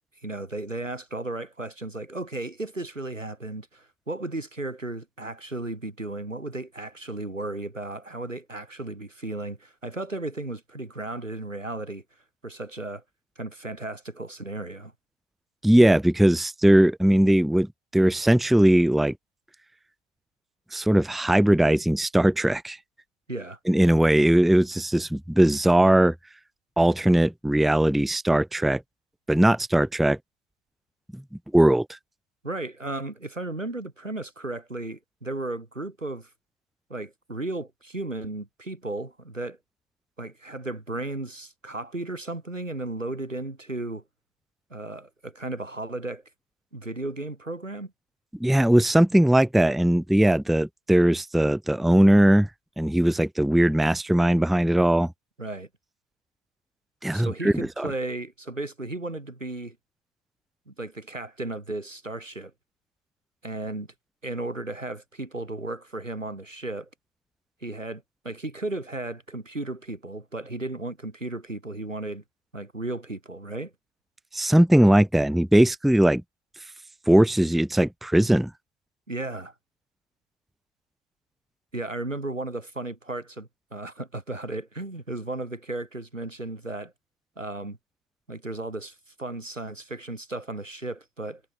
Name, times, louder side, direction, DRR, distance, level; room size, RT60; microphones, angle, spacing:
voice 1, 0.2-12.0 12.4-13.0 13.4-14.9 23.3-23.6 32.4-36.3 36.9-39.6 40.2-44.0 44.7-46.2 46.7-47.9 55.4-55.7 57.1-59.8 60.7-62.5 63.4-63.9 64.2-66.9 67.6-72.2 72.5-73.7 79.1-79.5 81.7-86.9 87.4-87.8 88.3-91.4, right 2 dB, 85° right, 3.3 m, -34 dB
voice 2, 15.6-19.1 20.7-22.8 23.7-26.1 26.8-28.8 29.3-30.2 31.1-31.2 31.5-32.0 48.4-52.5 52.8-55.1 57.0-57.9 74.3-76.2 77.1-78.5, right 1 dB, ahead, 0.8 m, -20 dB
figure-of-eight pair, 90°, 37 cm